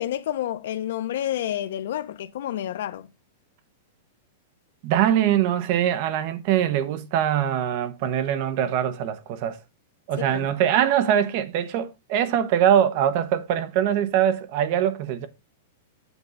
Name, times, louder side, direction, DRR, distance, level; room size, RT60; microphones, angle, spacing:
voice 1, 0.0-3.1 10.2-10.5, left 12 dB, 55° left, 0.5 m, -29 dB
voice 2, 4.8-9.6 10.1-15.3, right 10 dB, 35° right, 0.9 m, -23 dB
8.1 x 3.5 x 6.3 m
supercardioid pair, 180°, 0 cm